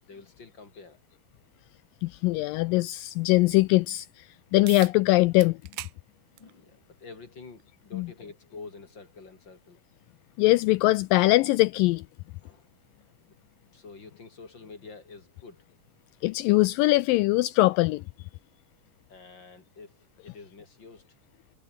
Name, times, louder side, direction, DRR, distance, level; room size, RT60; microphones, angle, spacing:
voice 1, 0.1-1.0 6.3-9.8 12.4-12.7 13.0-13.1 13.7-15.7 19.1-21.1, left 4 dB, 30° left, 3.7 m, -47 dB
voice 2, 2.0-4.3 4.5-5.6 7.9-8.1 10.4-12.0 16.2-18.0, left 20 dB, 85° left, 2.0 m, -22 dB
sound 1, 4.7-5.0 5.4-6.0 6.4-6.5 7.6-7.7 12.6-12.7, right 18 dB, 85° right, 2.6 m, -40 dB
omnidirectional pair, 4.4 m